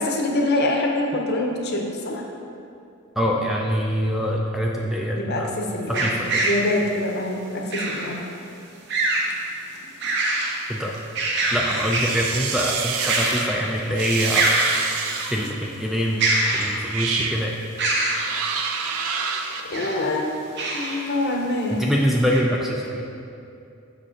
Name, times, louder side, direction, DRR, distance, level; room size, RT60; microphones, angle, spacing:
voice 1, 0.0-2.2 5.2-8.2 19.7-20.3 20.7-21.8, left 1 dB, 50° left, 1 dB, 0.8 m, -25 dB
voice 2, 3.2-5.5 5.9-6.4 10.7-11.0 11.5-14.5 15.3-16.3 16.5-17.6 21.8-23.1, equal, ahead, -2 dB, 0.3 m, -24 dB
sound 1, 5.9-6.7 7.7-8.1 8.9-9.3 9.8-10.6 10.9-12.3 13.0-13.7 13.9-14.0 14.3-15.4 16.2-17.1 17.8-18.3 19.5-20.1 20.6-21.0 21.6-21.7 22.3-22.4, right 2 dB, 50° right, 0.9 m, -24 dB
sound 2, 11.7-13.5 13.9-15.5 16.2-16.4 16.8-17.4 18.1-19.6, right 6 dB, 80° right, 0.5 m, -28 dB
6.6 x 5.1 x 5.0 m, 2.7 s
head